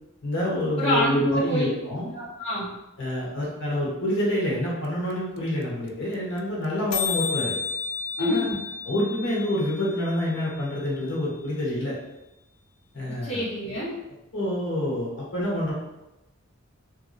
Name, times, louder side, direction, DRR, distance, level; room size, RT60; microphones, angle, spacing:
voice 1, 0.2-2.0 3.0-7.5 8.2-8.5 8.8-11.9 12.9-13.4 14.3-15.7, left 1 dB, 60° left, -5 dB, 1.0 m, -27 dB
voice 2, 0.8-1.7 2.1-2.7 8.2-8.6 13.2-13.9, left 1 dB, 30° left, -9 dB, 0.8 m, -26 dB
sound 1, 4.8-4.9 5.1-5.2 5.4-5.6 5.9-6.0 6.1-6.4 6.6-6.7 6.9-10.9, left 7 dB, 80° left, 0.3 m, -32 dB
2.9 x 2.7 x 2.6 m, 0.95 s
head